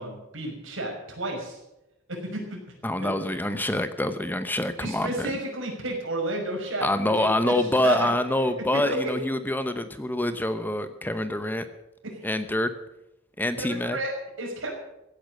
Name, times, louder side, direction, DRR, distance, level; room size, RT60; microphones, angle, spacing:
voice 1, 0.0-1.6 2.1-2.6 2.9-3.1 4.8-6.9 7.1-7.5 7.8-8.1 8.7-9.1 12.0-12.2 13.6-14.8, right 1 dB, 70° right, 1 dB, 5.8 m, -32 dB
voice 2, 2.8-5.3 6.8-11.6 12.2-12.7 13.4-14.0, left 1 dB, 10° left, 10 dB, 0.8 m, -26 dB
16.0 x 10.0 x 7.7 m, 0.90 s
head